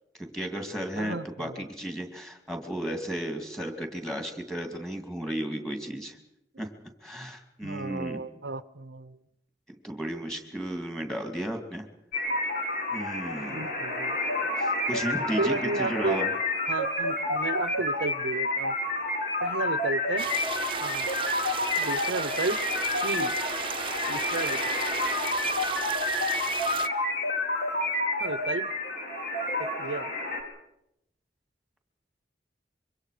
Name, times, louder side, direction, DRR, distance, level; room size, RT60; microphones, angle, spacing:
voice 1, 0.2-6.2 6.6-6.7 7.0-8.2 9.8-11.8 12.9-13.7 14.6-16.3, right 1 dB, ahead, 5 dB, 2.4 m, -34 dB
voice 2, 0.9-1.6 6.5-6.7 7.6-9.2 13.5-14.2 15.4-16.2 16.7-18.7 19.4-20.3 20.8-21.1 21.8-22.6 23.0-23.3 24.1-24.6 28.2-28.7 29.6-30.1, right 3 dB, 85° right, 14 dB, 0.8 m, -32 dB
sound 1, 12.1-30.4, left 2 dB, 50° left, 4.1 m, -29 dB
sound 2, 20.2-26.9, right 6 dB, 30° right, 0.8 m, -34 dB
26.0 x 23.5 x 5.0 m, 0.80 s
head